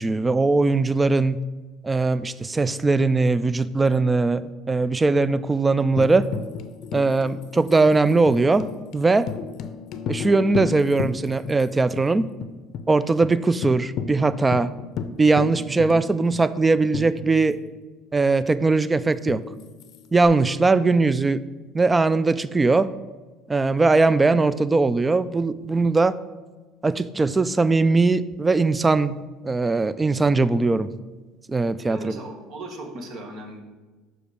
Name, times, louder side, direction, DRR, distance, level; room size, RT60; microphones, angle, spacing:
voice 1, 0.0-1.4 1.8-6.3 6.9-8.7 8.9-9.3 10.1-12.3 12.9-14.7 15.2-17.6 18.1-19.4 20.1-21.4 21.7-22.9 23.5-26.2 26.8-30.9 31.5-32.1, right 3 dB, 20° right, 16 dB, 0.3 m, -20 dB
Tambourine, 6.0-11.7 12.0-12.1 12.4-12.9 13.2-13.3 13.6-17.7 19.3-20.3, left 7 dB, 60° left, 0.5 m, -34 dB
voice 2, 31.9-33.6, right 2 dB, 55° right, 4 dB, 1.3 m, -37 dB
5.9 x 5.1 x 4.9 m, 1.3 s
supercardioid pair, 100°, 0 cm